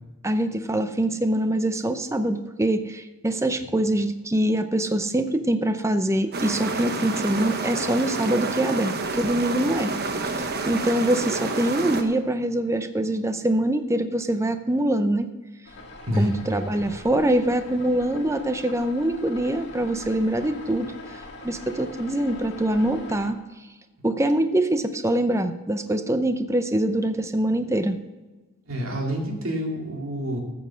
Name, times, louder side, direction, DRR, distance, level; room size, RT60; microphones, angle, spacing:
voice 1, 0.2-9.9 10.3-15.3 16.2-21.2 21.4-23.4 24.0-28.0, right 1 dB, 15° right, 9 dB, 0.6 m, -24 dB
sound 1, 6.3-12.0, right 3 dB, 45° right, 1.1 m, -29 dB
sound 2, 15.6-23.3, left 2 dB, 50° left, 2.1 m, -42 dB
voice 2, 28.7-30.4, equal, 65° right, 0 dB, 2.5 m, -27 dB
14.0 x 7.1 x 6.3 m, 1.2 s
head